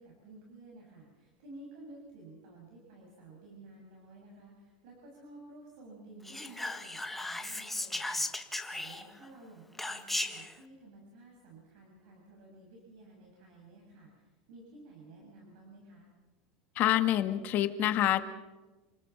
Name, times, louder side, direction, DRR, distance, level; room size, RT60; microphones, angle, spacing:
voice 1, 0.0-16.1, right 2 dB, 70° right, -1 dB, 7.2 m, -53 dB
Whispering, 6.3-9.3 9.8-10.5, left 2 dB, 5° left, 1.5 m, -36 dB
voice 2, 16.7-18.3, left 13 dB, 45° left, 10 dB, 1.7 m, -27 dB
29.5 x 20.0 x 5.9 m, 1.2 s
supercardioid pair, 125°, 4 cm